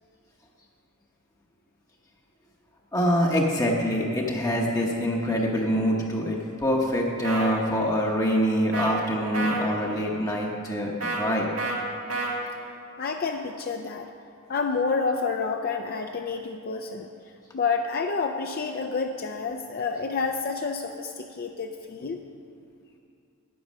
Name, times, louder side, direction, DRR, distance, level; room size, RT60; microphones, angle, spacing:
voice 1, 2.9-11.5, equal, 15° left, -2 dB, 0.8 m, -25 dB
sound 1, 7.2-7.5 8.7-8.9 9.3-9.6 11.0-11.2 11.6-11.8 12.1-12.3, right 2 dB, 90° right, 1.9 m, -29 dB
voice 2, 13.0-14.1 14.5-17.1 17.5-22.2, left 4 dB, 45° left, 4 dB, 0.4 m, -29 dB
9.3 x 9.1 x 6.2 m, 2.5 s
head